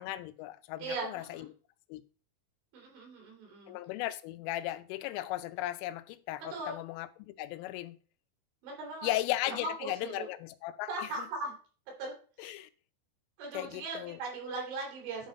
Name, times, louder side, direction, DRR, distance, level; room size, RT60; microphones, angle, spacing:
voice 1, 0.0-1.5 1.9-2.0 3.7-8.0 9.0-10.9 12.4-12.7 13.5-14.2, left 15 dB, 90° left, 3.2 m, -36 dB
voice 2, 0.8-1.5 2.7-3.8 6.5-6.8 8.6-9.1 9.5-10.3 10.9-11.5 12.0-12.1 12.4-12.5 13.4-15.3, right 3 dB, 75° right, 5.5 m, -39 dB
11.0 x 3.9 x 5.2 m
omnidirectional pair, 5.6 m